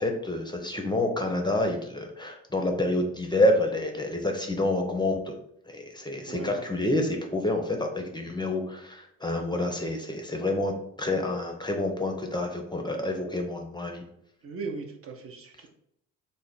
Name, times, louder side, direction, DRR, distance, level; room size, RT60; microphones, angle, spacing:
voice 1, 0.0-5.4 5.7-10.7 11.0-14.0, left 1 dB, 15° left, 3 dB, 0.5 m, -28 dB
voice 2, 6.3-6.6 14.4-15.7, right 4 dB, 50° right, 4 dB, 0.7 m, -38 dB
3.3 x 2.1 x 3.9 m, 0.73 s
cardioid pair, 90°, 30 cm